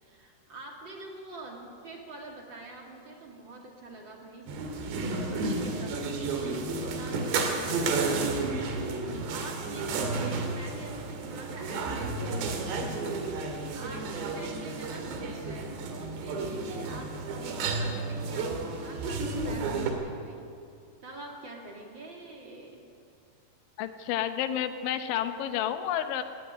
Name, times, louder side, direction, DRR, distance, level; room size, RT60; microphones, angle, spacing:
voice 1, 0.0-13.1 13.4-20.5 21.0-22.9, right 2 dB, 30° right, 0 dB, 2.7 m, -46 dB
sound 1, 4.5-19.9, right 3 dB, 75° right, 4.2 m, -32 dB
voice 2, 23.8-26.2, left 10 dB, 90° left, 9 dB, 3.5 m, -30 dB
18.0 x 16.5 x 9.8 m, 2.5 s
omnidirectional pair, 5.2 m